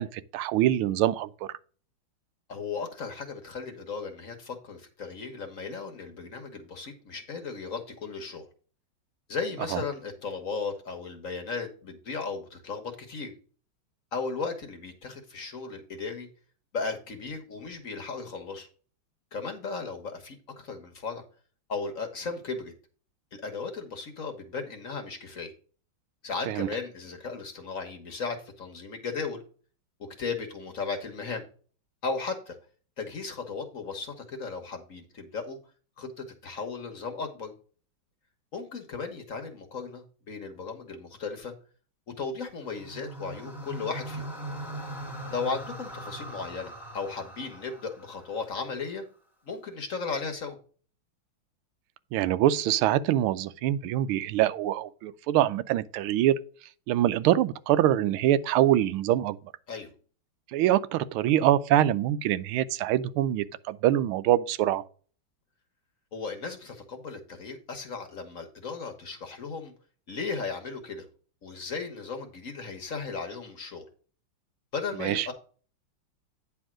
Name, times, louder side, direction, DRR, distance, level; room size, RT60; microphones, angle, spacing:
voice 1, 0.0-1.5 9.7-9.8 26.5-26.7 52.1-56.4 56.9-59.4 60.5-64.8 75.0-75.3, right 12 dB, 90° right, 1.5 m, -24 dB
voice 2, 2.5-8.5 9.3-13.3 14.1-16.3 16.7-18.7 19.3-21.2 21.7-22.7 23.4-25.5 26.2-29.4 30.2-31.4 32.0-32.5 33.0-35.6 36.0-37.5 38.5-41.5 42.1-44.3 45.3-49.0 49.4-50.6 59.7-59.9 66.1-69.7 70.1-71.0 71.4-73.8 74.7-75.3, left 4 dB, 45° left, 1.4 m, -36 dB
sound 1, 42.6-48.9, right 1 dB, 10° left, 1.4 m, -41 dB
9.5 x 3.6 x 6.0 m
omnidirectional pair, 2.3 m